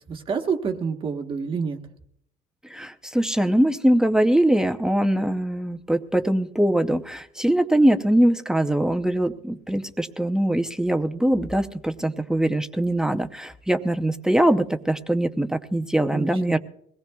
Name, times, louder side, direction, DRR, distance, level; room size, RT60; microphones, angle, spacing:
voice 1, 0.1-1.8 16.1-16.6, right 5 dB, 30° right, 2 dB, 1.2 m, -28 dB
voice 2, 2.6-16.6, right 1 dB, 5° right, 6 dB, 0.6 m, -22 dB
22.5 x 18.0 x 2.3 m, 0.70 s
cardioid pair, 150°, 17 cm